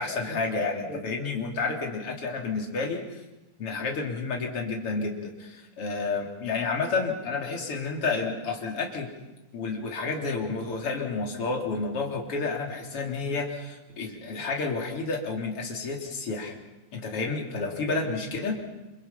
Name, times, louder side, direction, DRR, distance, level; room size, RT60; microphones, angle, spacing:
voice 1, 0.0-3.2 3.6-9.1 9.5-16.6 16.9-18.6, left 4 dB, 30° left, 1 dB, 3.4 m, -30 dB
27.5 x 26.0 x 5.7 m, 1.1 s
omnidirectional pair, 5.9 m